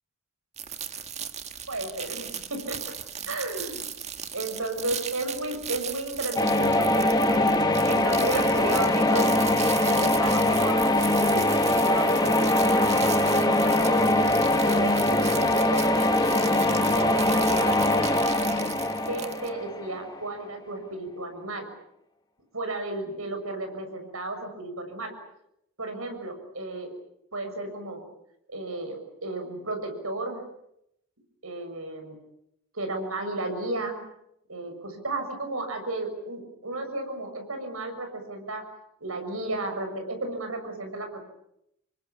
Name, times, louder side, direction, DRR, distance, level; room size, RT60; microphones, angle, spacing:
sound 1, 0.6-19.5, right 8 dB, 30° right, 1.7 m, -37 dB
voice 1, 1.7-2.8 3.3-3.8 4.3-7.4 7.9-9.4 9.8-10.8 11.2-14.1 14.7-17.9 19.0-21.6 22.5-25.1 25.8-26.9 27.3-28.0 28.5-30.4 31.4-32.2 32.7-34.0 34.5-38.6 39.0-41.2, right 2 dB, 80° right, 5 dB, 6.8 m, -33 dB
sound 2, 6.4-20.2, left 1 dB, 20° left, 2.1 m, -22 dB
28.0 x 22.5 x 8.6 m, 0.78 s
head